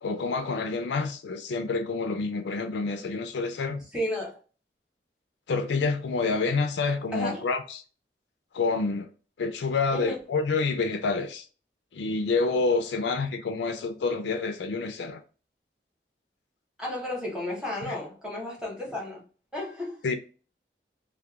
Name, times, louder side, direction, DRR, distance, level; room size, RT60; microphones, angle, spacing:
voice 1, 0.0-3.8 5.5-7.8 8.5-9.1 9.4-11.5 11.9-15.2 17.9-18.0 20.0-20.1, left 4 dB, 90° left, 0.4 m, -28 dB
voice 2, 3.9-4.4 7.1-7.4 9.9-10.2 16.8-19.2 19.5-20.1, left 1 dB, 5° right, 0.8 m, -33 dB
2.3 x 2.2 x 2.7 m
head